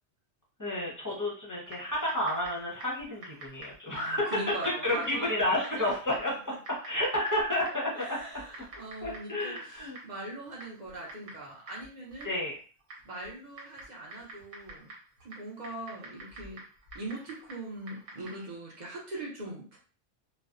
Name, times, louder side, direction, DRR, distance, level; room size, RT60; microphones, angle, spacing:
voice 1, 0.6-6.3 6.8-8.2 9.0-10.0 12.2-12.5, left 1 dB, 20° left, -5 dB, 0.6 m, -30 dB
Typing, 1.7-18.5, right 2 dB, 85° right, 1.2 m, -50 dB
voice 2, 3.9-6.6 7.9-9.6 10.0-12.3 13.0-14.9 15.2-16.6 16.9-19.8, right 2 dB, 45° right, -3 dB, 0.7 m, -41 dB
2.5 x 2.1 x 2.4 m, 0.39 s
omnidirectional pair, 1.2 m